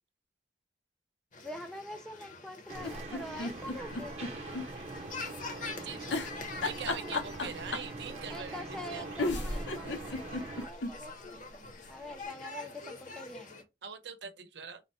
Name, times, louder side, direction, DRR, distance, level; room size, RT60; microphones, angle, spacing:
sound 1, 1.3-13.6, left 3 dB, 45° left, 0.8 m, -46 dB
voice 1, 1.4-4.2 6.9-7.2 8.3-13.6, equal, 5° left, 0.4 m, -45 dB
sound 2, 2.7-10.7, right 3 dB, 35° right, 0.8 m, -43 dB
sound 3, 2.8-4.7 5.0-5.1 6.1-8.0 8.8-8.9 9.2-10.9 11.4-11.5 11.7-11.8, left 3 dB, 80° left, 0.7 m, -34 dB
voice 2, 5.7-6.1 6.6-8.6 8.9-9.1 13.8-14.8, right 6 dB, 70° right, 0.7 m, -42 dB
3.9 x 2.1 x 4.1 m
head